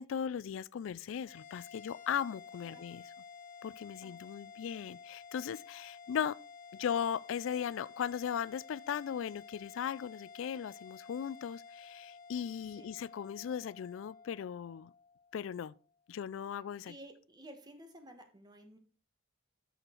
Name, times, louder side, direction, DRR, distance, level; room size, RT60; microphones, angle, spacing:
voice 1, 0.0-3.0 3.6-6.4 6.7-14.9 15.3-15.7 16.1-16.9, left 8 dB, 75° left, 0.3 m, -37 dB
sound 1, 1.2-15.8, left 5 dB, 40° left, 1.0 m, -53 dB
voice 2, 16.8-18.8, right 1 dB, 20° right, 1.3 m, -53 dB
7.5 x 6.6 x 4.4 m
head